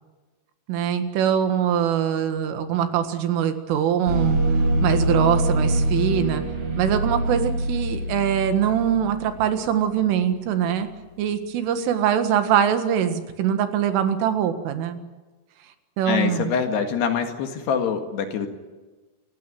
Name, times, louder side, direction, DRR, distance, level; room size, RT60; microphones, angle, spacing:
voice 1, 0.7-4.4 4.8-6.4 6.8-10.9 11.2-15.0 16.0-16.5, right 9 dB, 85° right, 8 dB, 4.3 m, -23 dB
sound 1, 4.1-9.3, right 1 dB, 45° right, 6.6 m, -24 dB
voice 2, 16.1-18.5, left 7 dB, 65° left, 5 dB, 3.6 m, -24 dB
28.5 x 15.5 x 9.3 m, 1.2 s
omnidirectional pair, 5.6 m